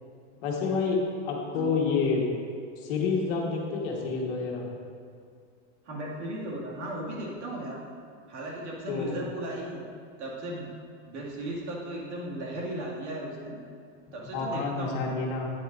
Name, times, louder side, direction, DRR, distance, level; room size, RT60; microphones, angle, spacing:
voice 1, 0.3-2.3 2.8-4.7 8.9-9.2 14.1-15.5, left 4 dB, 55° left, -1 dB, 1.5 m, -29 dB
voice 2, 5.8-7.8 8.3-9.8 10.2-10.7 11.0-13.6 14.1-15.1, right 1 dB, 90° right, -3 dB, 2.3 m, -36 dB
10.0 x 9.0 x 2.6 m, 2.3 s
supercardioid pair, 160°, 34 cm